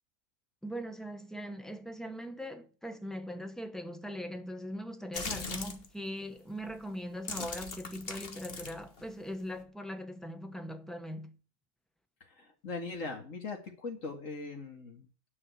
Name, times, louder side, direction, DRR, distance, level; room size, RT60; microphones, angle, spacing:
voice 1, 0.6-11.4, equal, ahead, 0.7 m, -40 dB
sound 1, 5.1-5.9 6.6-6.8 7.1-9.6, left 3 dB, 50° left, 1.5 m, -40 dB
voice 2, 12.3-15.1, left 3 dB, 80° left, 2.5 m, -40 dB
9.8 x 5.7 x 8.2 m
omnidirectional pair, 1.3 m